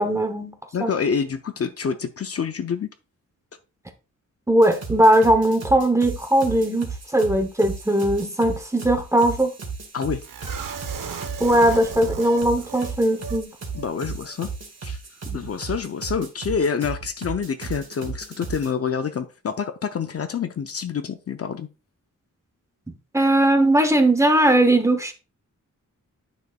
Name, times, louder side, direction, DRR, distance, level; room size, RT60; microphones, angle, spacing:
voice 1, 0.0-1.0 4.5-9.5 11.4-13.5 15.3-15.4 23.1-25.1, right 1 dB, 10° right, 0.9 m, -19 dB
voice 2, 0.7-2.9 9.9-10.2 13.7-14.5 14.8-15.0 15.3-21.7, left 6 dB, 45° left, 0.5 m, -27 dB
sound 1, 4.6-18.7, right 5 dB, 50° right, 2.0 m, -35 dB
sound 2, 10.2-13.4 13.7-13.9 14.2-14.4, right 6 dB, 80° right, 1.0 m, -36 dB
9.5 x 6.3 x 2.3 m
wide cardioid pair, 145°, 32 cm